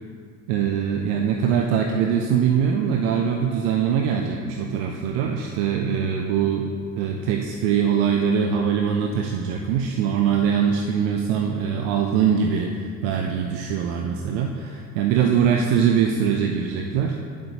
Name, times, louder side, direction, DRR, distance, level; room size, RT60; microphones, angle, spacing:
voice 1, 0.5-6.7 7.0-17.2, right 7 dB, 65° right, 2 dB, 0.7 m, -22 dB
9.7 x 7.6 x 2.9 m, 2.1 s
figure-of-eight pair, 45°, 49 cm